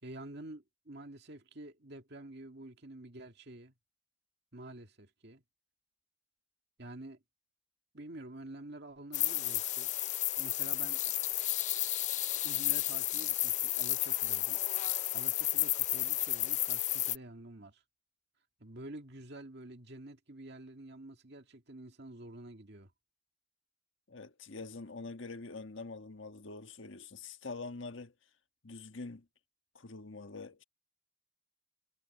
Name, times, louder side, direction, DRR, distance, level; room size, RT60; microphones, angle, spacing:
voice 1, 0.0-3.7 4.5-5.4 6.8-7.2 7.9-9.9 10.4-11.1 12.4-14.6 15.1-17.8 18.6-22.9, right 1 dB, 55° right, 2.2 m, -48 dB
sound 1, 9.1-17.2, left 14 dB, 35° left, 0.4 m, -32 dB
voice 2, 24.1-28.1 28.6-29.3 29.7-30.6, left 3 dB, 65° left, 1.5 m, -45 dB
head